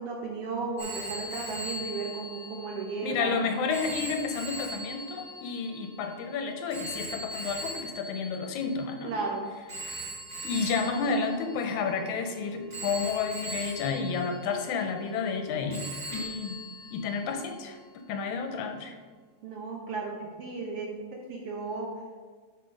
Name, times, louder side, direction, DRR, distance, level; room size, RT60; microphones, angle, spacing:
voice 1, 0.0-3.4 9.0-9.5 19.4-21.9, right 4 dB, 70° right, 0 dB, 1.4 m, -34 dB
Telephone, 0.8-9.1 9.7-12.2 12.7-15.4 15.7-17.4, right 1 dB, 30° right, 2.5 m, -40 dB
voice 2, 3.0-9.2 9.8-10.0 10.4-16.6 16.9-17.8 18.1-19.0, left 5 dB, 80° left, 5 dB, 2.1 m, -31 dB
7.0 x 5.8 x 5.2 m, 1.5 s
omnidirectional pair, 3.5 m